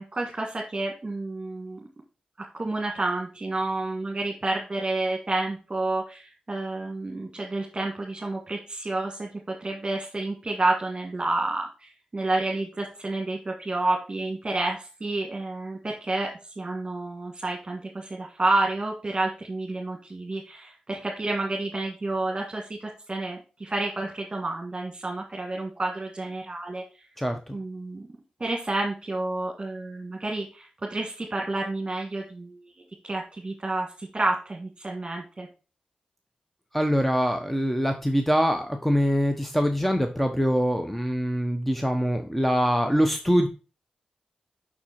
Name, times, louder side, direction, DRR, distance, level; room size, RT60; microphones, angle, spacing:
voice 1, 0.0-1.8 2.5-9.3 9.6-16.3 16.6-27.0 27.5-28.0 28.4-32.7 33.0-35.5, right 2 dB, 35° right, 0 dB, 1.8 m, -30 dB
voice 2, 27.2-27.6 36.7-43.5, equal, 5° left, 5 dB, 1.0 m, -24 dB
6.1 x 4.4 x 4.2 m, 0.33 s
cardioid pair, 45°, 3 cm